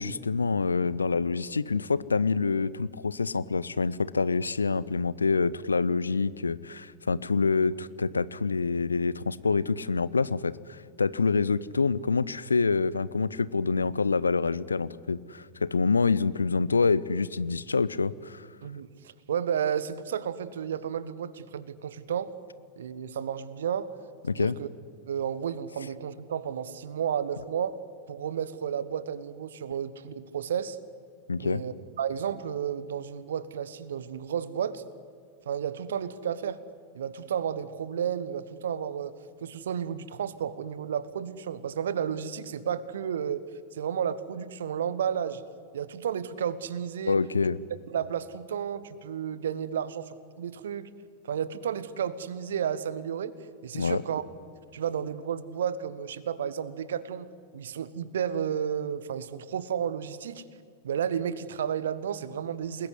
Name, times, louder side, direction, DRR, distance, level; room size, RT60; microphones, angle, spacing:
voice 1, 0.0-18.5 24.3-24.6 31.3-31.6 47.1-47.6 53.7-54.0, left 4 dB, 75° left, 19 dB, 0.7 m, -26 dB
voice 2, 18.6-22.3 22.8-23.9 24.3-24.7 25.1-27.8 28.1-30.8 31.4-34.8 35.4-36.6 36.9-39.1 39.4-43.4 43.7-45.4 45.7-47.2 47.9-50.9 51.2-53.3 53.6-54.2 54.7-57.3 57.5-60.4 60.8-62.9, right 8 dB, 65° right, 16 dB, 1.4 m, -32 dB
28.5 x 20.5 x 9.8 m, 2.1 s
figure-of-eight pair, 90°, 0 cm